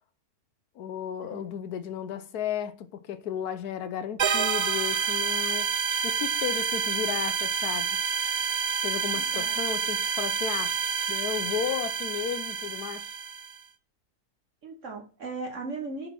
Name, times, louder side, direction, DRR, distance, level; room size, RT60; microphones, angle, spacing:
voice 1, 0.8-8.0 8.8-10.8 11.1-13.2, left 9 dB, 85° left, 1.3 m, -34 dB
sound 1, 4.2-13.6, right 6 dB, 90° right, 0.4 m, -28 dB
voice 2, 9.1-9.6 14.6-16.1, right 3 dB, 55° right, 1.4 m, -37 dB
9.0 x 4.2 x 6.0 m
omnidirectional pair, 1.6 m